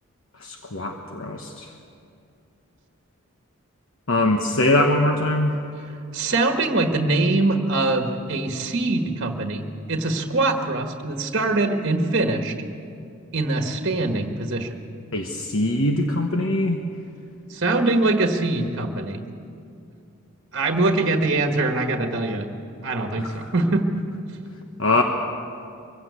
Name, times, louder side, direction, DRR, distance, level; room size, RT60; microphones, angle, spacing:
voice 1, 0.4-1.7 4.1-5.5 15.1-16.8 23.2-23.3 24.8-25.0, left 1 dB, 60° left, 3 dB, 1.2 m, -22 dB
voice 2, 6.1-12.5 13.3-14.8 17.5-19.2 20.5-22.5 22.8-23.9, right 2 dB, 50° right, 4 dB, 1.4 m, -23 dB
23.0 x 16.0 x 8.2 m, 2.5 s
head